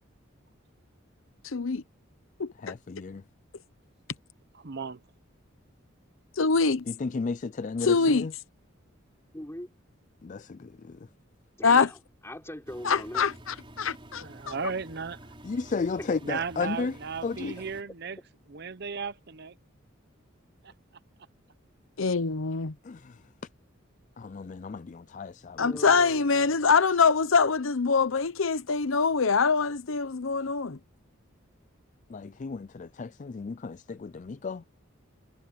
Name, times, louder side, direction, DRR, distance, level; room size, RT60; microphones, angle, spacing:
voice 1, 1.5-1.8 2.4-2.5 6.4-6.8 7.8-8.3 11.6-11.9 12.8-14.3 22.0-22.7 25.6-30.8, left 5 dB, 80° left, 0.8 m, -24 dB
voice 2, 2.6-3.2 6.9-8.3 10.2-11.0 15.4-16.9 17.2-17.6 22.8-23.2 24.2-25.6 32.1-34.6, left 4 dB, 40° left, 0.4 m, -34 dB
voice 3, 4.5-5.0 7.8-8.2 14.2-15.3 16.2-18.2 18.5-19.6 20.6-20.7, right 5 dB, 55° right, 0.8 m, -36 dB
voice 4, 9.3-9.7 11.6-13.3 16.0-16.1 17.6-17.7 25.5-26.5, left 1 dB, 15° left, 3.9 m, -41 dB
Engine, 12.7-17.8, right 1 dB, 25° right, 4.9 m, -49 dB
head